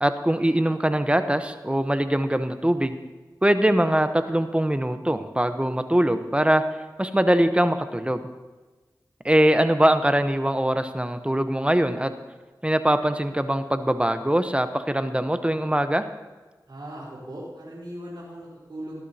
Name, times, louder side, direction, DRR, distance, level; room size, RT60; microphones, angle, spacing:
voice 1, 0.0-2.9 3.4-6.6 7.0-8.2 9.2-12.1 12.6-16.1, right 1 dB, 15° right, 9 dB, 0.9 m, -22 dB
voice 2, 16.7-19.0, right 1 dB, 80° right, -7 dB, 3.8 m, -38 dB
18.5 x 12.0 x 2.8 m, 1.3 s
cardioid pair, 40°, 8 cm